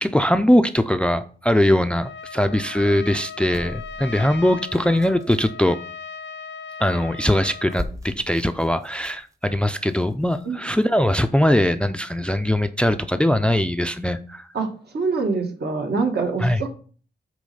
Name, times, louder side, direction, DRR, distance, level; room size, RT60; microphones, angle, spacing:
voice 1, 0.0-5.8 6.8-14.5 16.4-16.6, left 1 dB, 5° left, 0.4 m, -21 dB
Trumpet, 2.0-7.9, left 6 dB, 90° left, 0.4 m, -38 dB
opening a plastic package of chocolates, 3.5-5.6 7.1-7.2 7.6-11.2 11.7-11.8, equal, 20° right, 0.8 m, -39 dB
voice 2, 14.9-16.7, right 4 dB, 70° right, 1.5 m, -24 dB
8.3 x 3.1 x 5.5 m
wide cardioid pair, 120°, 18 cm